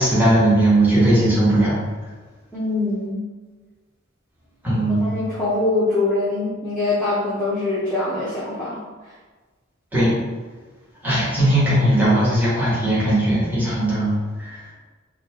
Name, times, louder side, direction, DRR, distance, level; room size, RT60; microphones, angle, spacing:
voice 1, 0.0-1.8 4.6-5.0 9.9-10.1 11.0-14.7, right 1 dB, 10° right, -10 dB, 1.2 m, -18 dB
voice 2, 2.5-3.3 5.0-8.8, left 2 dB, 10° left, -10 dB, 0.7 m, -23 dB
4.1 x 2.3 x 2.8 m, 1.3 s
head